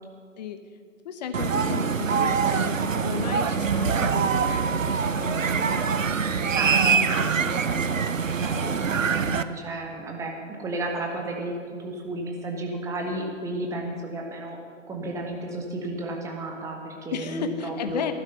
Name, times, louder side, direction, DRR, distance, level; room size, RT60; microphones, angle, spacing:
voice 1, 1.0-7.8 8.6-8.7 17.1-18.1, left 8 dB, 35° left, 8 dB, 1.1 m, -35 dB
sound 1, 1.3-9.4, right 6 dB, 80° right, 0.8 m, -24 dB
voice 2, 6.5-7.0 7.3-7.6 8.4-14.6 14.9-18.1, right 2 dB, 10° right, 1 dB, 1.2 m, -33 dB
15.0 x 12.0 x 5.7 m, 2.1 s
figure-of-eight pair, 130°, 38 cm